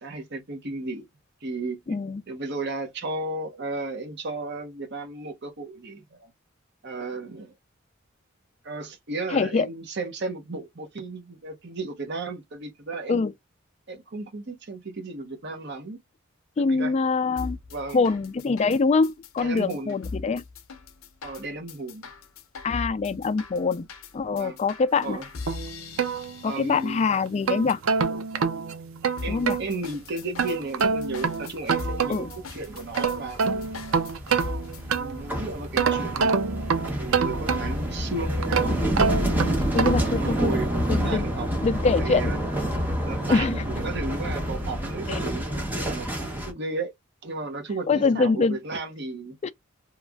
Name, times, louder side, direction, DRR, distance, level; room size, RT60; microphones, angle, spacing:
voice 1, 0.0-1.1 1.4-1.8 2.3-6.3 6.8-7.5 8.6-13.2 13.9-16.0 16.6-16.9 17.7-18.1 19.4-20.0 21.2-22.1 24.3-24.6 25.0-25.3 26.4-27.0 29.2-33.7 34.9-36.7 37.0-38.8 40.0-41.5 42.0-42.4 43.0-46.9 47.2-47.9 48.1-49.4, right 3 dB, 55° right, 0.9 m, -34 dB
voice 2, 1.9-2.2 9.3-9.7 13.1-13.3 16.6-17.6 17.9-20.4 22.6-23.9 24.1-25.2 26.4-27.8 29.3-29.6 32.1-32.3 39.7-40.5 40.9-41.3 41.6-42.4 43.3-43.6 45.1-45.2 47.9-48.6 49.4-49.5, left 4 dB, 30° left, 0.3 m, -24 dB
sound 1, 17.4-27.0 29.2-35.0, left 4 dB, 80° left, 0.6 m, -40 dB
sound 2, 25.5-26.8 27.3-29.7 30.4-32.4 32.8-35.3 35.8-37.9 38.4-40.2, right 5 dB, 85° right, 0.6 m, -26 dB
sound 3, 30.8-31.3 31.5-46.5, equal, 10° right, 0.9 m, -28 dB
3.1 x 2.4 x 2.3 m
head